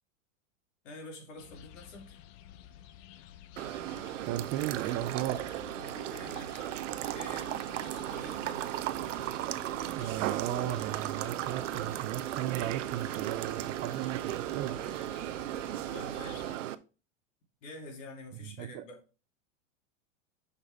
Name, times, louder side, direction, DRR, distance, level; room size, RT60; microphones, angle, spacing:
voice 1, 0.8-2.2 5.8-6.7 7.1-8.7 15.9-16.7 17.6-19.0, left 2 dB, 70° left, 2.7 m, -47 dB
sound 1, 1.4-16.6, left 11 dB, 55° left, 0.8 m, -52 dB
sound 2, 3.6-16.7, right 13 dB, 75° right, 0.6 m, -36 dB
voice 2, 4.3-5.5 9.8-14.9 18.4-18.8, right 13 dB, 30° right, 0.4 m, -36 dB
6.1 x 5.4 x 3.5 m
hypercardioid pair, 120°, 38 cm